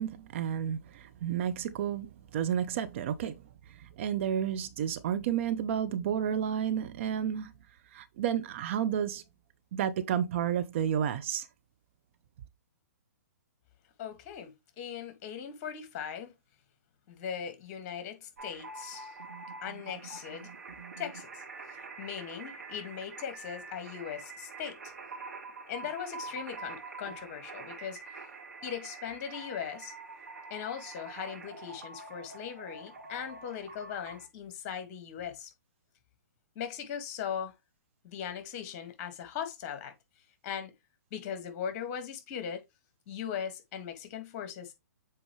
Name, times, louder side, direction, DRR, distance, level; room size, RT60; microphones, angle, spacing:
voice 1, 0.0-3.4 4.0-7.5 7.9-9.2 9.7-11.4, right 9 dB, 45° right, 0.8 m, -31 dB
voice 2, 14.0-16.3 17.1-19.1 19.6-20.5 21.0-24.8 25.7-28.0 28.6-29.9 30.5-35.5 36.6-37.5 38.0-39.9 40.4-40.7 41.1-42.6 43.1-44.7, left 8 dB, 35° left, 1.9 m, -39 dB
sound 1, 18.4-34.3, right 3 dB, 70° right, 2.6 m, -45 dB
7.4 x 4.4 x 3.2 m
figure-of-eight pair, 120°, 9 cm